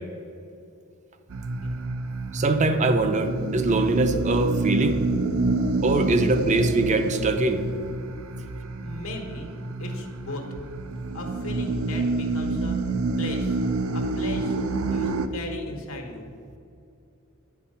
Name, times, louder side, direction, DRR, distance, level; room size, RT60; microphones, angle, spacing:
sound 1, 1.3-15.3, right 2 dB, 85° right, 0.5 m, -28 dB
voice 1, 2.3-5.0 5.8-7.6, right 2 dB, 35° right, 8 dB, 0.5 m, -22 dB
voice 2, 8.8-9.5 9.8-10.5 11.1-12.8 13.2-13.6 13.9-14.6 14.9-16.3, left 1 dB, 80° left, 3 dB, 1.2 m, -37 dB
9.1 x 4.4 x 5.5 m, 2.6 s
head